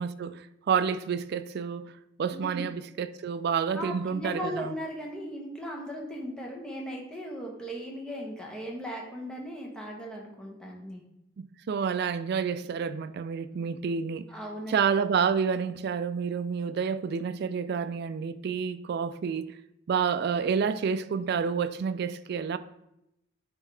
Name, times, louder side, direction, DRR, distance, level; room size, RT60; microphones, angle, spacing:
voice 1, 0.0-1.9 2.2-4.7 11.4-14.3 14.7-19.5 19.9-22.6, right 6 dB, 55° right, 0.3 m, -29 dB
voice 2, 2.3-2.7 3.7-11.0 14.3-14.8, equal, 5° left, 1.1 m, -37 dB
9.7 x 3.6 x 3.3 m
head